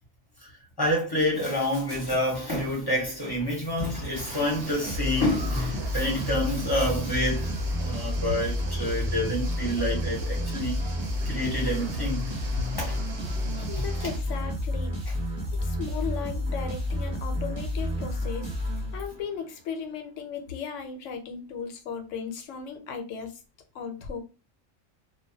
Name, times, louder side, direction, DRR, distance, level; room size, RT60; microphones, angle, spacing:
voice 1, 0.8-7.5 7.8-10.8 11.2-12.2 12.8-13.0, left 1 dB, 25° left, 0.6 m, -28 dB
sound 1, 4.1-14.2, right 2 dB, 60° right, 0.8 m, -40 dB
sound 2, 4.8-19.4, left 1 dB, 30° right, 0.5 m, -30 dB
voice 2, 13.7-15.0 15.6-23.3 23.7-24.2, left 6 dB, 75° left, 0.9 m, -36 dB
2.2 x 2.1 x 2.6 m
omnidirectional pair, 1.3 m